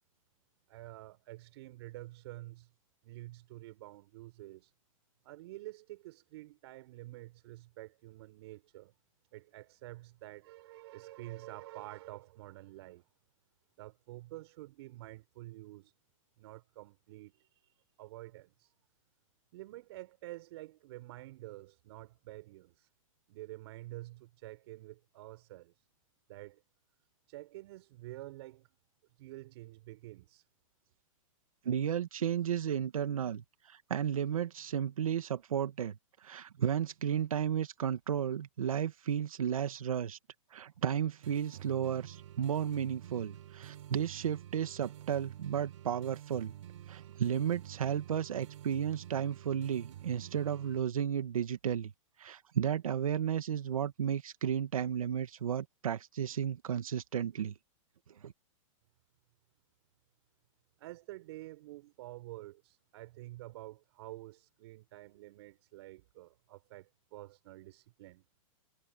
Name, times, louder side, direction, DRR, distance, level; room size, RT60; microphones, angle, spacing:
voice 1, 0.7-2.7 3.0-4.7 5.2-8.9 9.3-13.0 13.8-15.9 16.4-18.7 19.5-22.9 23.3-25.8 26.3-26.6 27.3-28.7 29.2-30.5 60.8-68.2, right 17 dB, 50° right, 6.5 m, -49 dB
voice 2, 31.6-40.2 40.5-46.5 46.9-51.9 52.2-57.5 58.2-58.3, right 9 dB, 90° right, 1.8 m, -33 dB
sound 1, 41.2-50.8, right 12 dB, 65° right, 4.1 m, -49 dB
hypercardioid pair, 150°, 17 cm